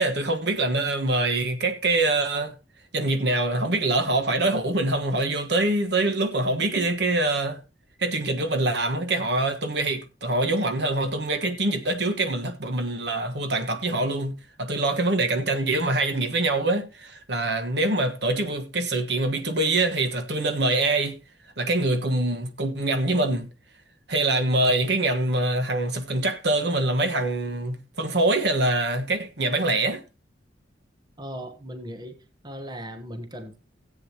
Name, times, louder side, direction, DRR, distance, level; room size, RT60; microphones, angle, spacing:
voice 1, 0.0-2.5 2.9-7.6 8.0-21.2 21.6-23.5 24.1-30.0, right 2 dB, 60° right, 1.4 m, -24 dB
voice 2, 31.2-32.2 32.4-33.6, equal, 25° right, 1.0 m, -37 dB
17.0 x 8.1 x 2.9 m
head